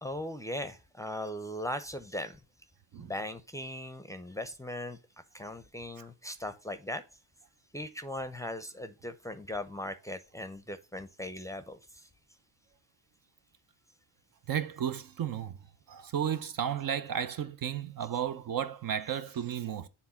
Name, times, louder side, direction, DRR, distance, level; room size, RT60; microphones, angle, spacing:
voice 1, 0.0-2.4 3.0-5.0 5.3-7.0 7.7-12.1, left 1 dB, 5° left, 0.6 m, -39 dB
voice 2, 14.5-15.6 15.9-19.9, right 9 dB, 50° right, 0.7 m, -33 dB
7.3 x 3.6 x 5.6 m
cardioid pair, 80°, 44 cm